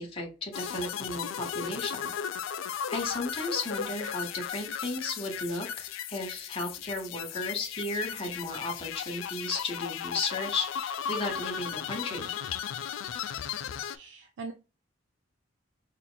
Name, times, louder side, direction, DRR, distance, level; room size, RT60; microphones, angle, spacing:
voice 1, 0.0-2.1 2.4-2.5 2.9-12.3, left 2 dB, 30° left, 0 dB, 1.0 m, -34 dB
sound 1, 0.5-14.0, left 8 dB, 80° left, 0.3 m, -36 dB
voice 2, 13.9-14.5, right 4 dB, 70° right, 6 dB, 0.4 m, -41 dB
4.9 x 2.9 x 2.2 m, 0.30 s
head